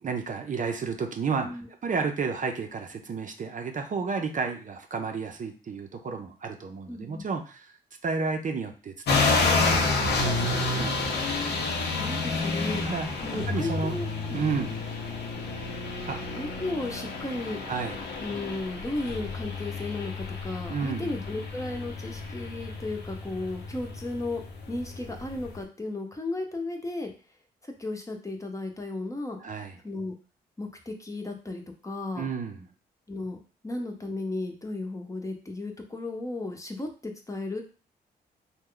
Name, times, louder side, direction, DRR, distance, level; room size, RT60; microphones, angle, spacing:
voice 1, 0.0-1.5 1.8-7.8 8.0-11.0 12.8-13.1 13.5-14.0 14.3-14.8 16.1-16.2 17.7-18.0 20.7-21.1 29.4-29.7 32.2-32.7, right 5 dB, 45° right, 5 dB, 0.6 m, -32 dB
voice 2, 6.9-7.3 12.0-12.9 13.2-14.4 16.3-17.6 18.2-24.4 24.7-27.1 27.6-29.4 29.8-30.1 30.6-32.3 33.1-37.6, left 2 dB, 20° left, 3 dB, 0.8 m, -34 dB
sound 1, 9.1-25.6, left 3 dB, 75° left, 0.7 m, -30 dB
3.0 x 2.2 x 3.8 m, 0.36 s
cardioid pair, 65°, 18 cm